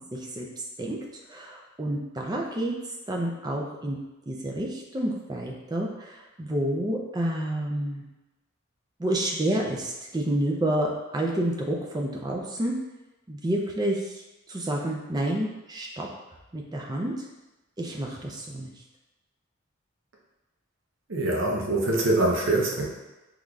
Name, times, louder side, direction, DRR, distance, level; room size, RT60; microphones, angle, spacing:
voice 1, 0.1-0.5 0.8-1.0 1.3-2.7 3.1-4.0 4.3-8.0 9.0-12.7 13.3-14.2 14.5-16.1 16.5-17.2 17.8-18.7, right 1 dB, 20° right, -1 dB, 0.4 m, -29 dB
voice 2, 21.1-22.8, right 2 dB, 70° right, -1 dB, 0.7 m, -24 dB
3.8 x 3.1 x 2.3 m, 1.0 s
head